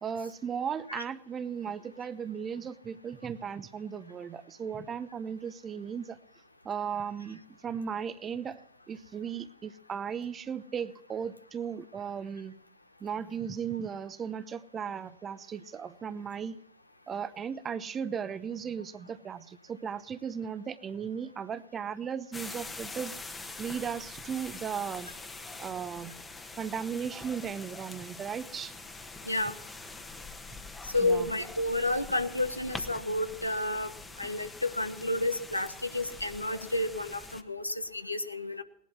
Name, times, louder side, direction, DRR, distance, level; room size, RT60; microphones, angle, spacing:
voice 1, 0.0-6.2 6.6-8.6 8.9-12.6 13.0-16.6 17.1-23.2 23.6-25.1 25.6-26.1 26.6-28.7 31.0-31.3, right 7 dB, 25° right, 15 dB, 0.8 m, -36 dB
sound 1, 22.3-37.4, left 3 dB, 10° left, 1.3 m, -44 dB
voice 2, 29.2-29.6 30.8-33.9 34.2-38.6, left 2 dB, 85° left, 9 dB, 1.3 m, -31 dB
19.0 x 11.0 x 6.0 m, 0.73 s
figure-of-eight pair, 90°, 0 cm